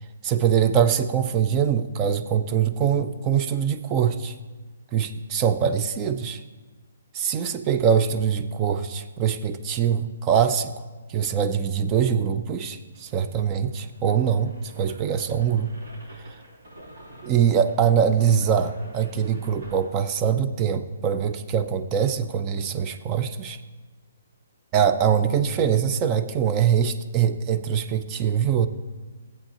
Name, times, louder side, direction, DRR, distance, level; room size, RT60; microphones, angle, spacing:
voice 1, 0.2-4.4 4.9-6.4 7.1-10.7 11.1-15.7 16.2-16.3 17.2-23.6 24.7-28.7, right 8 dB, 20° right, 10 dB, 0.4 m, -23 dB
sound 1, 12.9-19.9, right 1 dB, 85° right, 3.0 m, -48 dB
14.5 x 8.0 x 2.9 m, 1.3 s
hypercardioid pair, 160°, 0 cm